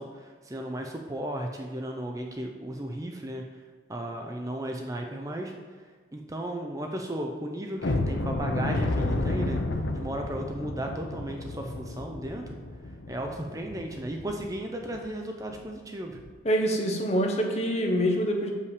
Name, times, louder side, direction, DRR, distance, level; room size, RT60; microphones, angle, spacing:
voice 1, 0.0-3.4 3.9-5.5 6.1-9.6 9.9-12.6 13.1-16.2, right 1 dB, 15° right, 3 dB, 0.5 m, -35 dB
sound 1, 7.8-14.5 14.9-15.1 15.5-15.6 16.1-16.3, left 2 dB, 70° left, 0.6 m, -31 dB
voice 2, 16.4-18.5, equal, 35° left, 2 dB, 0.9 m, -25 dB
6.8 x 5.5 x 4.9 m, 1.4 s
head